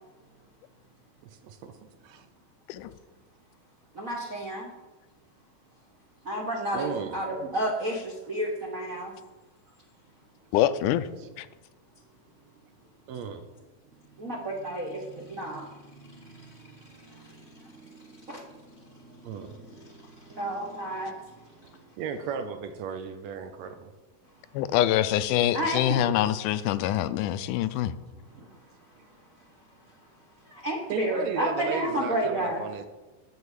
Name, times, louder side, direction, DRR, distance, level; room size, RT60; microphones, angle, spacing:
voice 1, 1.2-2.3 6.7-7.3 11.2-11.3 13.1-13.5 19.2-19.5 22.0-23.9 30.9-32.9, right 6 dB, 75° right, 8 dB, 1.7 m, -35 dB
voice 2, 3.9-4.7 6.2-9.1 14.2-16.6 17.0-17.8 18.3-18.4 19.3-21.1 25.5-26.1 28.4-28.5 30.5-32.6, right 1 dB, 55° right, -1 dB, 0.9 m, -32 dB
voice 3, 10.5-11.1 11.4-11.5 24.5-27.9, left 12 dB, 85° left, 13 dB, 2.1 m, -25 dB
11.0 x 4.6 x 8.2 m, 1.2 s
omnidirectional pair, 3.5 m